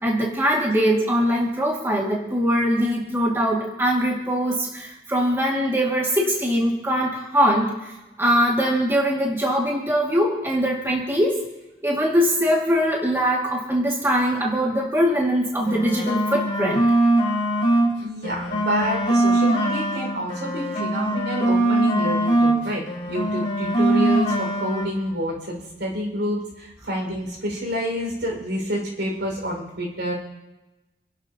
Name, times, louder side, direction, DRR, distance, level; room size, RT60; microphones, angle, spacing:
voice 1, 0.0-7.9 8.2-11.4 11.8-16.8, equal, 15° right, -3 dB, 2.4 m, -22 dB
sound 1, 15.6-17.9 18.2-22.6 22.9-24.9, right 1 dB, 35° left, 3.8 m, -22 dB
voice 2, 18.0-30.1, equal, 80° right, -1 dB, 5.9 m, -28 dB
28.5 x 11.5 x 3.0 m, 1.0 s
head